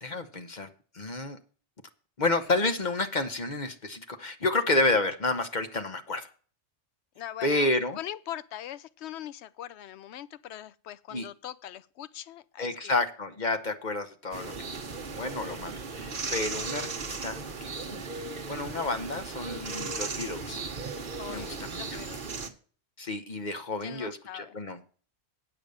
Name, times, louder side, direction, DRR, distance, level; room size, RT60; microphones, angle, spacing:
voice 1, 0.0-0.7 0.9-1.4 2.2-6.3 7.4-8.0 11.1-11.3 12.6-14.7 15.1-18.0 18.5-20.6 21.3-21.8 23.0-24.8, left 2 dB, 40° left, 1.0 m, -30 dB
voice 2, 7.2-7.7 7.9-13.0 16.2-16.4 21.2-22.4 23.8-24.6, left 11 dB, 65° left, 0.8 m, -41 dB
sound 1, 14.3-22.5, right 4 dB, 45° right, 1.2 m, -36 dB
8.8 x 6.9 x 6.4 m
omnidirectional pair, 1.3 m